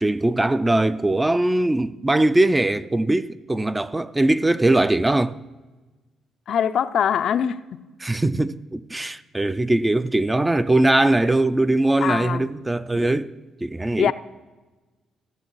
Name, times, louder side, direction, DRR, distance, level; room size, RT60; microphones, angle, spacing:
voice 1, 0.0-5.4 8.0-13.3 13.6-14.1, right 2 dB, 15° right, 0.4 m, -21 dB
voice 2, 6.5-7.8 12.0-12.5 14.0-14.1, left 8 dB, 65° left, 0.4 m, -23 dB
15.0 x 7.1 x 4.7 m
cardioid pair, 90°, 0 cm